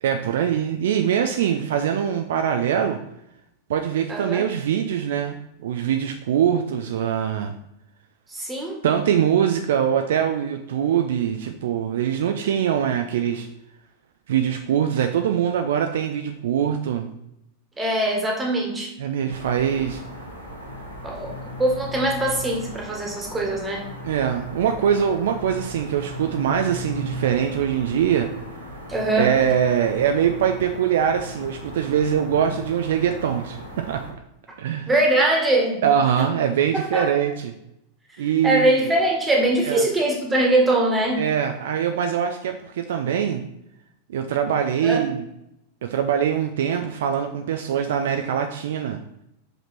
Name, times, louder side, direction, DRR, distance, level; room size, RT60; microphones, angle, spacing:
voice 1, 0.0-3.0 3.7-5.4 5.6-7.5 8.8-13.5 14.3-17.1 19.0-20.0 24.0-28.3 29.2-34.0 34.6-34.9 35.8-37.5 38.2-38.9 39.6-39.8 41.2-43.4 44.1-45.2 45.8-49.0, right 9 dB, 60° right, 6 dB, 0.5 m, -23 dB
voice 2, 4.1-4.5 8.3-8.8 17.8-18.9 21.0-21.3 21.6-23.8 28.9-29.4 34.9-35.8 36.7-37.1 38.2-41.2 44.8-45.0, right 1 dB, 15° right, 0 dB, 1.9 m, -22 dB
sound 1, 19.3-34.1, equal, 80° right, 2.0 m, -37 dB
6.0 x 5.4 x 4.3 m, 0.80 s
figure-of-eight pair, 90°, 0 cm